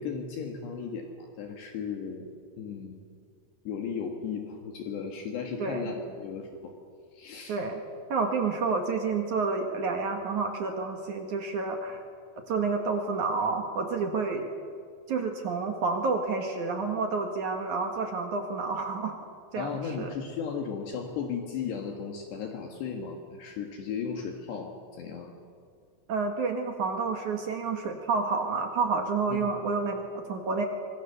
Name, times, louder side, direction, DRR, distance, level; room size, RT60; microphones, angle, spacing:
voice 1, 0.0-2.3 2.6-3.0 3.7-6.7 7.1-7.6 19.6-25.3 29.3-29.5, left 6 dB, 65° left, 2 dB, 3.6 m, -36 dB
voice 2, 7.5-7.8 8.1-12.0 12.5-14.4 15.1-19.1 19.5-20.1 26.1-30.6, right 4 dB, 60° right, 4 dB, 2.2 m, -29 dB
25.5 x 25.0 x 6.9 m, 2.3 s
omnidirectional pair, 5.5 m